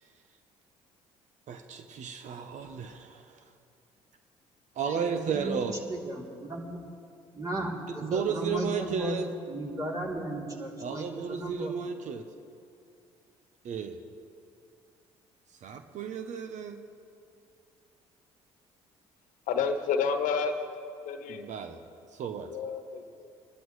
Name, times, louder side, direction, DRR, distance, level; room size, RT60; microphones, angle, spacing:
voice 1, 1.5-3.2 4.8-5.7 8.0-9.3 10.8-12.2 13.6-14.0 15.6-16.8 21.3-21.8 22.2-22.5, right 6 dB, 60° right, 8 dB, 0.9 m, -33 dB
voice 2, 4.9-6.8 7.3-9.2 9.5-11.7, right 1 dB, 25° right, -2 dB, 3.3 m, -36 dB
voice 3, 19.5-20.5 21.0-21.5 22.5-23.3, left 6 dB, 70° left, 7 dB, 1.2 m, -30 dB
23.0 x 12.0 x 3.2 m, 2.5 s
hypercardioid pair, 60°, 14 cm